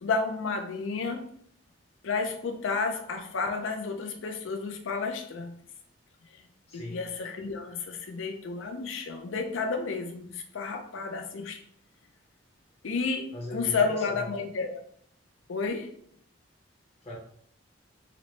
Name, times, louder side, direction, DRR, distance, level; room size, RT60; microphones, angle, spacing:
voice 1, 0.0-1.3 2.0-5.5 6.3-11.6 12.8-14.8 15.5-15.9, left 4 dB, 70° left, 5 dB, 0.5 m, -31 dB
voice 2, 6.7-7.0 13.3-14.3 17.0-17.2, left 1 dB, 30° left, -4 dB, 0.7 m, -39 dB
3.9 x 2.1 x 3.1 m, 0.65 s
head